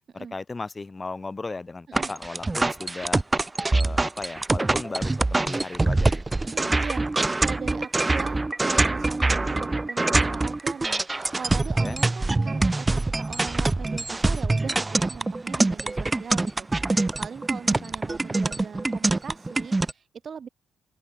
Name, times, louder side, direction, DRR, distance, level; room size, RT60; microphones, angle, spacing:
voice 1, 0.1-3.2 3.7-6.4 11.7-12.0 17.6-17.9, left 3 dB, 25° left, 1.2 m, -36 dB
sound 1, 1.9-19.9, right 2 dB, 20° right, 0.4 m, -24 dB
voice 2, 6.4-7.1 7.4-11.0 11.3-20.5, right 6 dB, 45° right, 1.4 m, -39 dB
cardioid pair, 90°, 0 cm